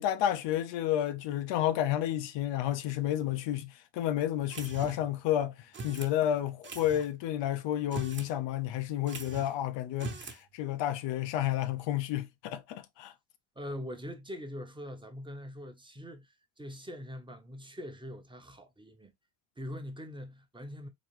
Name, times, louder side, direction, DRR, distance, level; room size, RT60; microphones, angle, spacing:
voice 1, 0.0-5.6 5.8-13.1, left 12 dB, 90° left, 0.7 m, -31 dB
sound 1, 4.5-5.1 5.7-6.1 6.6-7.1 7.8-8.3 8.6-8.7 9.1-9.6 9.9-10.4, right 3 dB, 25° right, 1.1 m, -41 dB
voice 2, 13.6-19.1 19.6-20.9, equal, 10° right, 0.8 m, -43 dB
4.0 x 2.9 x 3.1 m
cardioid pair, 120°, 43 cm